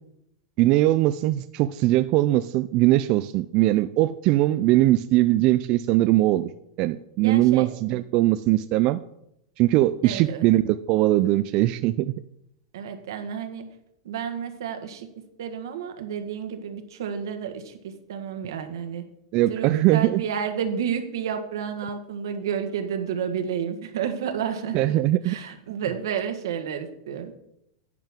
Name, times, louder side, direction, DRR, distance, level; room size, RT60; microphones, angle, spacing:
voice 1, 0.6-6.5 6.8-9.0 9.6-12.1 19.3-20.2 24.7-25.4, right 16 dB, 40° right, 12 dB, 0.3 m, -21 dB
voice 2, 7.2-8.0 10.0-10.5 12.7-13.7 14.0-15.1 15.4-19.0 19.5-24.8 25.2-27.3, right 7 dB, 80° right, 7 dB, 1.5 m, -31 dB
10.5 x 9.2 x 3.7 m, 0.78 s
supercardioid pair, 150°, 2 cm